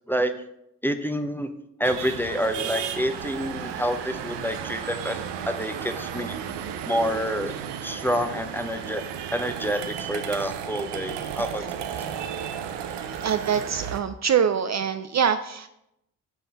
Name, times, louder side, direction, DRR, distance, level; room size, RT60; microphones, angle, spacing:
voice 1, 0.8-1.5 1.8-5.2 5.5-6.4 6.9-7.6 7.8-9.0 9.3-11.8, equal, 5° left, 8 dB, 0.6 m, -28 dB
sound 1, 1.8-14.0, right 8 dB, 80° right, 0.6 m, -34 dB
voice 2, 11.6-12.1 13.2-15.7, right 7 dB, 45° right, 10 dB, 0.4 m, -25 dB
7.0 x 3.9 x 4.2 m, 0.82 s
supercardioid pair, 40°, 41 cm